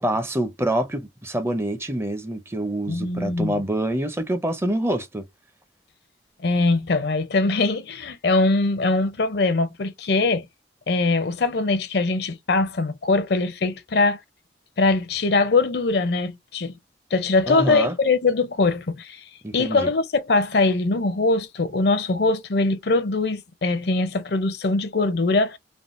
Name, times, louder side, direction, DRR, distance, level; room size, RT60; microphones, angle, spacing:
voice 1, 0.0-5.3 17.5-18.0 19.4-19.9, right 1 dB, 15° right, 0.5 m, -26 dB
voice 2, 2.9-3.6 6.4-10.5 10.9-14.2 14.8-16.7 17.1-19.2 19.5-25.6, left 3 dB, 60° left, 0.5 m, -22 dB
3.5 x 2.1 x 2.5 m
head